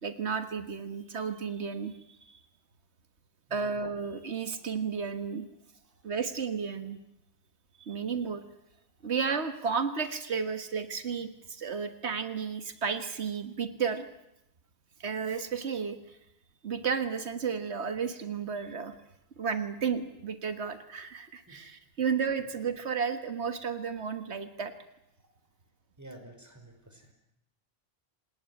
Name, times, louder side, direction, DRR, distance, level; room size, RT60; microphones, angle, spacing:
voice 1, 0.0-1.9 2.2-2.4 3.5-5.5 6.0-7.0 7.8-8.4 9.0-14.1 15.0-16.2 16.6-18.9 19.4-24.7, right 6 dB, 90° right, 9 dB, 1.7 m, -33 dB
voice 2, 3.5-3.8 5.8-6.0 21.5-21.6 22.4-22.5 26.0-27.1, right 1 dB, 15° right, 5 dB, 5.4 m, -50 dB
27.5 x 19.0 x 9.7 m, 0.84 s
omnidirectional pair, 1.1 m